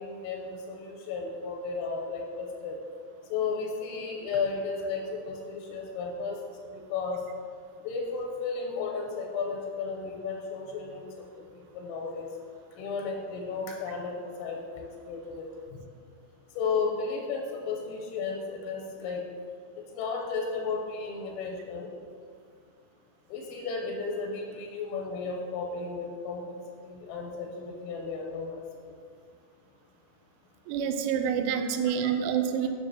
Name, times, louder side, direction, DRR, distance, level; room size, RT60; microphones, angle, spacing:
voice 1, 0.0-2.8 3.3-7.2 7.8-11.3 11.5-12.3 12.8-15.8 16.6-19.2 19.9-21.9 23.3-26.4 26.9-28.6 31.5-32.1 32.6-32.7, left 4 dB, 85° left, 0 dB, 3.3 m, -34 dB
voice 2, 30.7-32.7, right 8 dB, 85° right, 7 dB, 2.8 m, -27 dB
9.4 x 6.9 x 2.8 m, 2.1 s
omnidirectional pair, 5.9 m